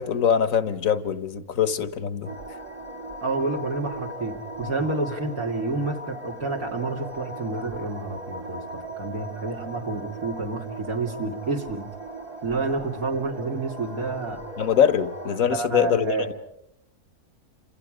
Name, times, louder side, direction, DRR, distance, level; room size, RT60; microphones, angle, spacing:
voice 1, 0.0-2.3 14.6-16.2, left 8 dB, 65° left, 1.6 m, -23 dB
sound 1, 2.2-15.4, right 1 dB, 25° right, 1.5 m, -38 dB
voice 2, 3.2-11.9 12.4-14.4 15.5-16.3, right 3 dB, 65° right, 3.1 m, -29 dB
30.0 x 27.0 x 5.1 m
omnidirectional pair, 1.6 m